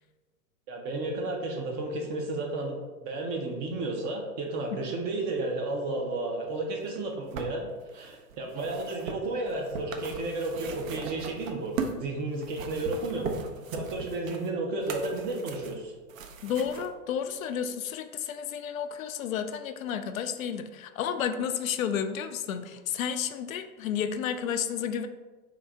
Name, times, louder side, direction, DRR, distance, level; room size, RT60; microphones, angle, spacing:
voice 1, 0.7-2.8 3.0-13.4 13.7-15.9, right 2 dB, 25° right, 1 dB, 0.4 m, -32 dB
Cardboard Box Rustle, 6.9-12.0 12.4-16.9 17.7-17.8, right 5 dB, 65° right, 0.7 m, -39 dB
voice 2, 16.4-25.1, left 8 dB, 65° left, 9 dB, 0.5 m, -31 dB
3.7 x 2.6 x 4.5 m, 1.3 s
hypercardioid pair, 105°, 44 cm